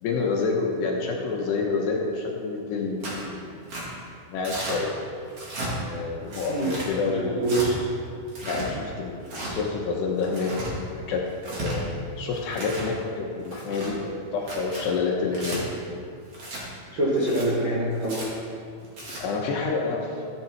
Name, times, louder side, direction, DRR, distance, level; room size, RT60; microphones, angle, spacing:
voice 1, 0.0-3.9 4.3-4.9 5.8-7.5 8.4-10.5 11.0-11.2 11.6-15.6 19.2-20.2, left 4 dB, 75° left, -1 dB, 2.8 m, -28 dB
Tearing, 3.0-3.2 3.7-3.8 4.4-4.8 5.3-5.7 6.3-6.9 7.4-7.7 8.3-8.7 9.2-9.5 10.2-10.7 11.3-11.8 12.3-12.9 13.4-13.9 14.4-14.8 15.3-15.6 16.3-16.6 17.2-17.4 18.0-18.3 18.8-19.2, right 2 dB, 40° right, 2.4 m, -35 dB
voice 2, 7.2-7.7 16.9-18.3, right 1 dB, 75° right, -7 dB, 1.1 m, -25 dB
13.5 x 10.5 x 4.6 m, 2.3 s
omnidirectional pair, 5.7 m